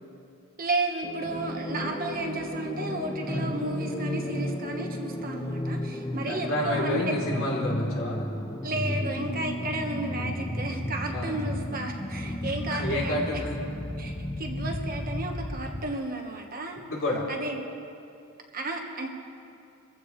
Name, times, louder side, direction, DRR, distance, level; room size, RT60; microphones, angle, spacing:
voice 1, 0.6-7.1 8.6-13.2 14.0-16.8 17.3-17.7 18.5-19.1, right 2 dB, 40° right, 2 dB, 1.4 m, -33 dB
sound 1, 1.0-16.0, left 1 dB, 15° left, 0.6 m, -33 dB
voice 2, 3.2-3.6 6.3-8.3 11.1-11.4 12.4-13.6 16.9-17.3, left 1 dB, 65° left, -3 dB, 3.6 m, -30 dB
26.5 x 15.5 x 3.3 m, 2.5 s
head